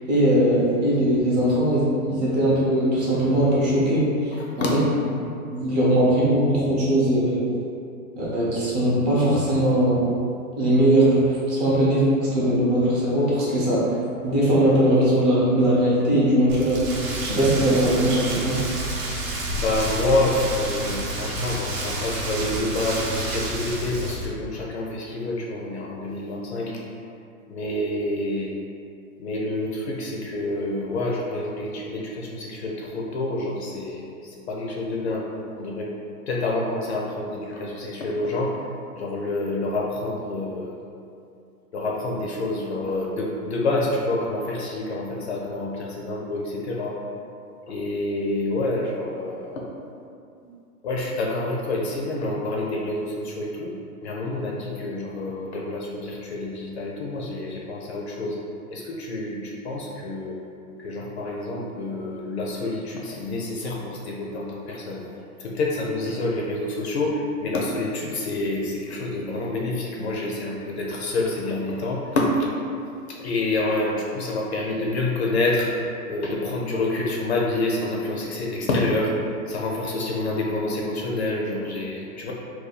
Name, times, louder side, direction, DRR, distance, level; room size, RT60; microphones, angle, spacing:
voice 1, 0.1-4.4 4.7-4.8 5.5-7.4 8.2-10.0 10.6-14.0 14.2-18.6, right 1 dB, 30° right, -7 dB, 0.6 m, -20 dB
voice 2, 4.4-4.8 19.6-26.8 27.5-28.5 29.2-35.3 35.6-35.9 36.3-38.7 38.9-40.7 41.7-47.0 47.7-49.6 50.4-53.8 54.0-58.4 58.7-60.4 60.8-72.5 73.1-79.1 79.5-82.3, left 2 dB, 50° left, -2 dB, 0.4 m, -27 dB
Rain, 16.5-24.3, right 1 dB, 60° right, 0.8 m, -29 dB
2.7 x 2.3 x 4.0 m, 2.5 s
hypercardioid pair, 150°, 45 cm